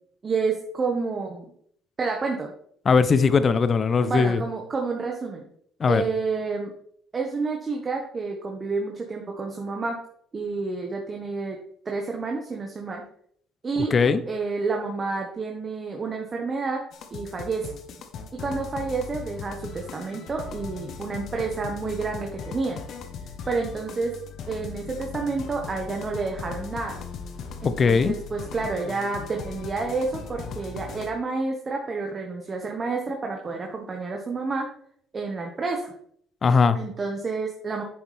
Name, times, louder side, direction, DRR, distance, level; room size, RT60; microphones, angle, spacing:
voice 1, 0.2-1.5 2.0-2.5 4.0-5.4 5.9-6.7 7.1-10.0 10.3-11.6 11.8-13.0 13.6-13.9 14.2-16.8 17.1-17.7 18.3-22.8 23.5-24.1 24.5-27.0 27.6-34.7 35.1-35.9 36.7-37.8, right 4 dB, 35° right, 1 dB, 1.6 m, -29 dB
voice 2, 2.8-4.4 5.8-6.0 13.9-14.2 27.6-28.1 36.4-36.8, left 5 dB, 40° left, 13 dB, 0.8 m, -19 dB
sound 1, 16.9-31.1, left 5 dB, 65° left, 1.4 m, -38 dB
9.5 x 7.2 x 3.6 m, 0.65 s
supercardioid pair, 70°, 0 cm